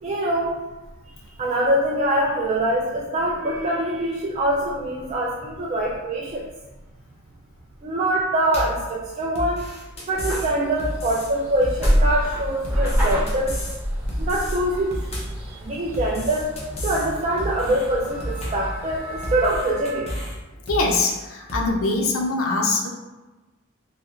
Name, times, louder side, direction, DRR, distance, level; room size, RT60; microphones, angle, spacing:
voice 1, 0.0-0.6 1.4-6.5 7.8-9.7 10.1-13.6 14.2-16.6 16.8-20.2, right 1 dB, 35° right, -3 dB, 0.3 m, -24 dB
sound 1, 8.5-8.8 9.4-10.5 10.8-11.3 11.6-12.1 12.6-13.8 14.1-14.6 14.9-15.4 15.9-17.1 17.4-17.9 18.2-18.7 19.2-20.4 20.7-21.2 21.5-21.7, equal, 30° left, 0.7 m, -31 dB
sound 2, 10.1-19.6, equal, 10° right, 0.9 m, -28 dB
voice 2, 20.7-22.9, left 3 dB, 70° left, 0 dB, 0.5 m, -23 dB
3.3 x 2.8 x 2.4 m, 1.1 s
head